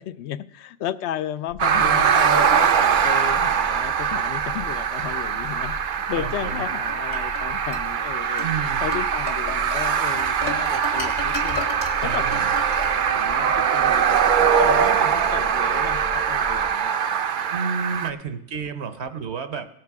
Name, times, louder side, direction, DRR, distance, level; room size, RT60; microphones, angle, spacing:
voice 1, 0.0-12.3 13.2-17.2, left 11 dB, 75° left, 15 dB, 0.8 m, -34 dB
sound 1, 1.5-16.8, left 2 dB, 20° left, 0.7 m, -40 dB
sound 2, 1.6-18.1, right 8 dB, 55° right, 0.6 m, -22 dB
voice 2, 6.2-6.7 8.4-8.8 12.0-12.5 17.5-19.7, right 6 dB, 70° right, 10 dB, 1.0 m, -31 dB
sound 3, 6.5-7.9 8.4-8.5 8.9-13.3, left 2 dB, 55° left, 1.8 m, -34 dB
17.5 x 6.6 x 4.7 m, 0.82 s
omnidirectional pair, 1.2 m